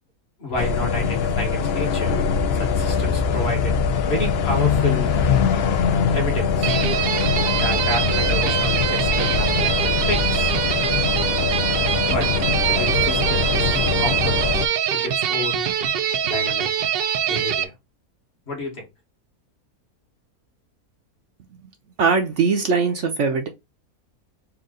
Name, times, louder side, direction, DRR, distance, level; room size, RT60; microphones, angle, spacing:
voice 1, 0.4-2.3 2.5-3.8 4.1-5.2 6.1-6.8 7.6-10.6 12.1-12.3 12.7-14.6 14.9-15.7 16.2-16.7 17.3-17.7 18.5-18.9, left 1 dB, 45° left, 1.6 m, -30 dB
sound 1, 0.6-14.7, left 6 dB, 60° left, 0.7 m, -22 dB
sound 2, 6.6-17.6, right 9 dB, 85° right, 0.5 m, -23 dB
voice 2, 22.0-23.5, right 5 dB, 60° right, 0.9 m, -20 dB
4.6 x 2.6 x 3.7 m
omnidirectional pair, 1.6 m